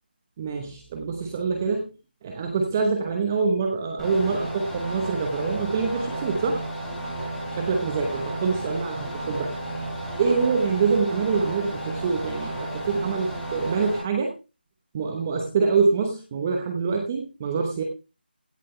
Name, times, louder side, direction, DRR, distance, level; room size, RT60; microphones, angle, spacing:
voice 1, 0.4-1.9 2.2-6.6 7.6-9.6 10.2-14.3 14.9-17.8, right 4 dB, 15° right, 3 dB, 0.9 m, -25 dB
sound 1, 4.0-14.0, right 1 dB, ahead, 2.8 m, -33 dB
16.0 x 7.5 x 3.2 m, 0.30 s
figure-of-eight pair, 170°, 6 cm